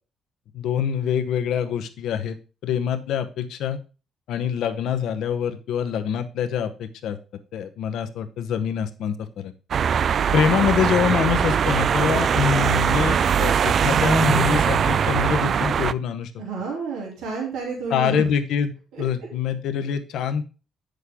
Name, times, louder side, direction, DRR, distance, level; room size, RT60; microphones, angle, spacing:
voice 1, 0.5-2.4 2.6-3.8 4.3-7.2 7.5-9.5 10.3-16.3 17.9-18.7 19.0-20.5, left 7 dB, 80° left, 8 dB, 0.9 m, -25 dB
sound 1, 9.7-15.9, right 7 dB, 55° right, 0.3 m, -21 dB
voice 2, 16.4-18.3 18.9-19.0, right 4 dB, 90° right, -1 dB, 2.7 m, -30 dB
8.2 x 6.5 x 3.6 m, 0.33 s
cardioid pair, 90°, 0 cm